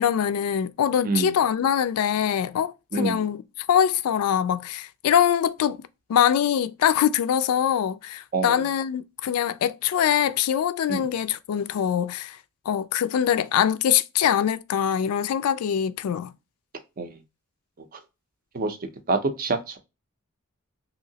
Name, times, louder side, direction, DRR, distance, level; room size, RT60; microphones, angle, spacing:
voice 1, 0.0-3.4 3.7-5.8 6.1-12.4 12.7-16.3, left 9 dB, 85° left, 0.3 m, -23 dB
voice 2, 1.0-1.4 2.9-3.3 8.3-8.6 10.9-11.1 17.0-17.2 18.5-18.8 19.1-19.8, right 3 dB, 40° right, 0.5 m, -26 dB
3.0 x 2.7 x 2.7 m
head